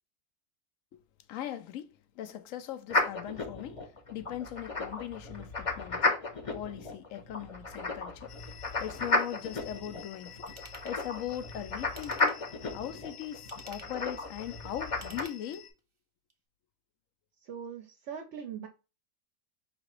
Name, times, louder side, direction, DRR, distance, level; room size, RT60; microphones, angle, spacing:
voice 1, 1.3-6.2 6.5-10.5 10.8-15.7, left 11 dB, 70° left, 0.9 m, -40 dB
sound 1, 2.9-15.2, left 2 dB, 30° left, 0.7 m, -33 dB
sound 2, 8.3-15.7, left 9 dB, 90° left, 1.5 m, -51 dB
Ratchet pawl / Tools, 10.5-11.0 11.8-12.5 13.3-14.0 14.9-15.8 16.3-16.4, right 3 dB, 35° right, 0.5 m, -51 dB
voice 2, 17.4-18.7, right 7 dB, 60° right, 0.9 m, -41 dB
5.0 x 2.8 x 3.0 m
omnidirectional pair, 1.6 m